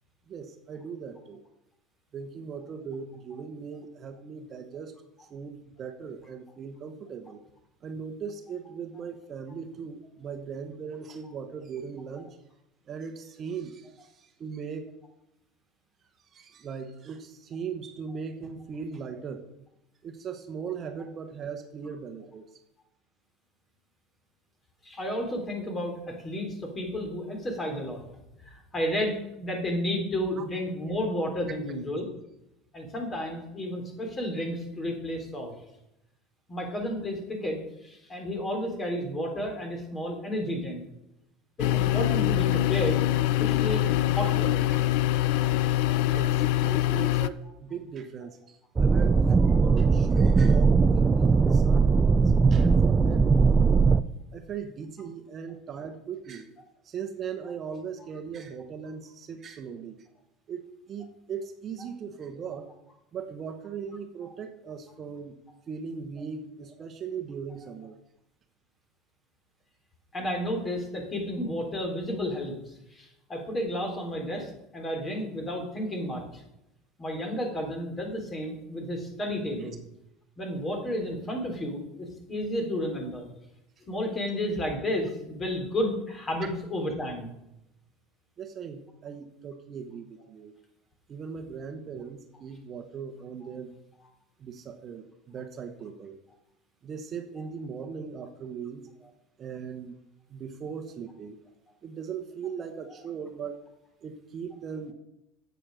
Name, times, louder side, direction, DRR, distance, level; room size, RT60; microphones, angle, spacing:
voice 1, 0.3-1.4 2.1-7.4 7.8-12.3 12.9-14.9 16.2-19.4 20.0-22.6 30.4-30.5 46.1-53.8 54.3-56.5 56.8-60.0 60.5-62.7 63.1-65.4 65.7-68.0 79.6-79.7 88.4-90.5 91.1-93.8 94.4-96.2 96.8-98.8 99.4-100.0 100.3-101.4 101.8-103.6 104.0-104.9, right 6 dB, 40° right, 7 dB, 1.1 m, -39 dB
voice 2, 24.8-28.0 28.5-32.1 32.7-35.5 36.5-40.9 41.6-44.7 70.1-76.4 77.0-79.8 80.4-83.3 83.9-87.3, equal, 25° left, 3 dB, 3.5 m, -32 dB
sound 1, 41.6-47.3, left 14 dB, 70° left, 0.5 m, -24 dB
sound 2, 48.8-54.0, right 4 dB, 20° right, 0.5 m, -20 dB
8.9 x 8.1 x 6.3 m, 0.87 s
supercardioid pair, 100°, 0 cm